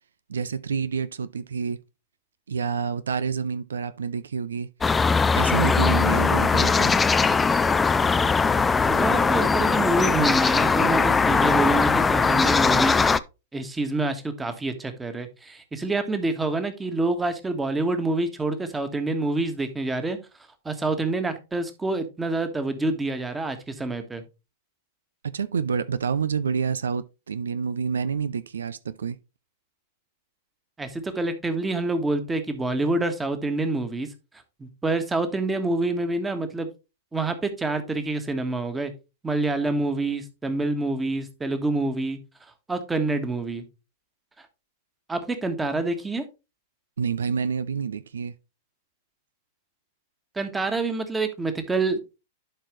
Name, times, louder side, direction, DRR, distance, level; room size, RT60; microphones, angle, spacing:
voice 1, 0.3-1.8 2.5-4.7 5.3-6.9 25.2-29.2 47.0-48.3, right 6 dB, 80° right, 0.4 m, -28 dB
sound 1, 4.8-13.2, left 4 dB, 15° left, 0.4 m, -20 dB
voice 2, 8.9-13.1 13.5-20.2 20.6-24.2 30.8-34.1 34.6-36.7 37.1-38.9 39.2-42.2 42.7-43.6 45.1-46.2 50.3-52.0, right 2 dB, 10° right, 1.5 m, -27 dB
11.5 x 4.7 x 3.2 m
hypercardioid pair, 105°, 0 cm